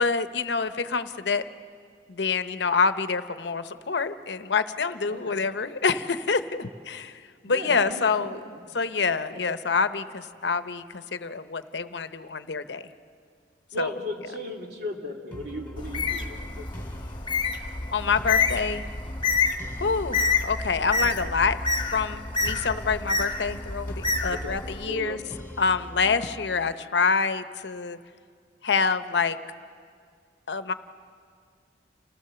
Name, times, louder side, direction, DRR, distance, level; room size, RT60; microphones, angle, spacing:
voice 1, 0.0-1.4 2.1-7.1 7.4-8.4 8.7-12.8 13.8-13.9 17.9-18.8 19.8-21.6 21.9-25.2 25.6-28.0 28.6-29.4 30.5-30.7, left 5 dB, 70° left, 11 dB, 0.8 m, -26 dB
voice 2, 7.4-8.6 9.5-9.6 13.7-16.7 24.3-24.6 24.9-25.2, left 1 dB, 65° right, 1 dB, 2.6 m, -36 dB
sound 1, 15.3-26.7, equal, 10° left, 2.0 m, -42 dB
Bird, 15.8-24.8, left 4 dB, 25° left, 1.2 m, -28 dB
29.0 x 16.5 x 6.9 m, 2.1 s
head